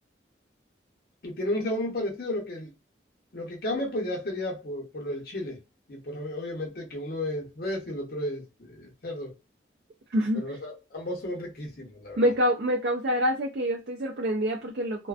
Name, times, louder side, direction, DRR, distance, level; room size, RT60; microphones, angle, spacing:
voice 1, 1.2-2.7 3.3-5.6 5.9-9.3 10.3-12.3, left 1 dB, 55° left, 0.7 m, -33 dB
voice 2, 10.1-10.6 12.2-15.1, equal, 60° right, 0.4 m, -26 dB
2.4 x 2.1 x 2.3 m
head